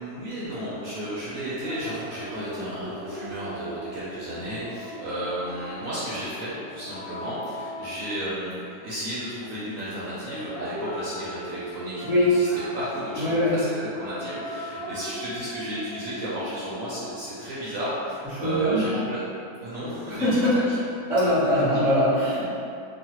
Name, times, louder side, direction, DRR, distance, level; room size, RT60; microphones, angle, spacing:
voice 1, 0.0-19.2 19.6-20.3 20.5-20.8, right 1 dB, 65° right, -9 dB, 0.9 m, -33 dB
sound 1, 0.6-8.8 10.2-17.1, equal, 25° left, 1.1 m, -39 dB
voice 2, 13.2-13.6 18.3-18.9 20.1-20.6 21.1-22.5, left 1 dB, 5° right, -12 dB, 0.5 m, -22 dB
3.1 x 2.2 x 2.9 m, 2.6 s
omnidirectional pair, 1.8 m